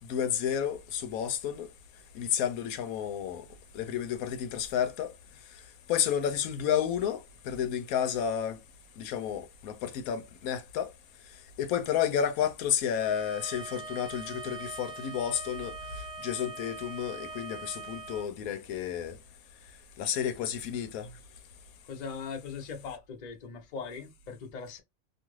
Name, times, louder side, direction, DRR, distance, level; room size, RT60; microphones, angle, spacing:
voice 1, 0.1-1.7 2.1-3.4 3.7-5.1 5.9-7.2 7.5-8.6 9.0-10.9 11.6-15.7 16.2-19.2 20.0-21.1, left 9 dB, 85° left, 1.1 m, -31 dB
Bowed string instrument, 13.0-18.3, right 3 dB, 65° right, 1.0 m, -42 dB
voice 2, 21.9-24.8, left 5 dB, 45° left, 0.6 m, -40 dB
2.5 x 2.4 x 3.0 m
omnidirectional pair, 1.4 m